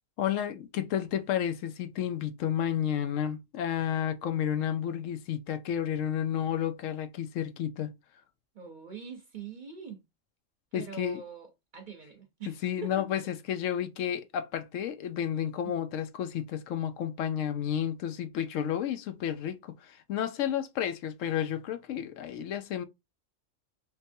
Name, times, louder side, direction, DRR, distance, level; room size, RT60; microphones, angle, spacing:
voice 1, 0.2-7.9 10.7-11.2 12.6-22.8, left 9 dB, 75° left, 0.9 m, -31 dB
voice 2, 8.5-10.0 10.7-13.1 15.6-15.9, right 6 dB, 45° right, 0.7 m, -44 dB
3.6 x 2.7 x 2.6 m
omnidirectional pair, 1.3 m